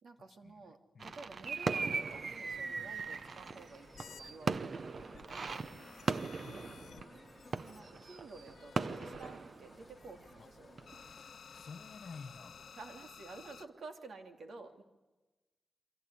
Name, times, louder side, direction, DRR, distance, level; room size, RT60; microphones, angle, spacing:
voice 1, 0.0-6.1 7.6-11.0 12.7-14.8, right 3 dB, 70° right, 3.0 m, -52 dB
sound 1, 1.0-10.4 10.8-11.0, right 4 dB, 45° right, 0.8 m, -39 dB
sound 2, 1.8-12.9, left 3 dB, 25° left, 1.5 m, -60 dB
sound 3, 2.0-4.6 5.0-7.8 8.5-10.6 10.8-13.7, left 7 dB, 85° left, 1.0 m, -56 dB
voice 2, 6.4-7.1 10.4-10.5 11.5-12.6, left 5 dB, 55° left, 1.4 m, -51 dB
28.5 x 24.5 x 8.3 m
wide cardioid pair, 160°, 0 cm